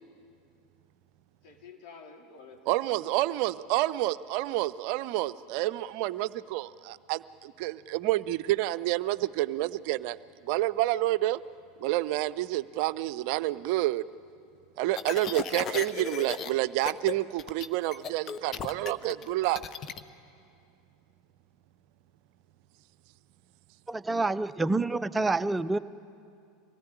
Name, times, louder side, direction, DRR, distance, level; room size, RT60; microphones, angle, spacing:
voice 1, 1.4-3.4, left 5 dB, 50° left, 1 dB, 3.6 m, -50 dB
voice 2, 2.7-10.2 10.4-11.4 11.8-14.0 14.8-19.6, right 16 dB, 55° right, 16 dB, 0.6 m, -29 dB
sound 1, 14.9-16.5 16.8-17.1 17.4-20.0, left 7 dB, 35° left, 1.0 m, -36 dB
voice 3, 23.9-25.8, right 3 dB, 15° right, 14 dB, 0.6 m, -27 dB
24.0 x 18.0 x 10.0 m, 2.4 s
figure-of-eight pair, 80°, 0 cm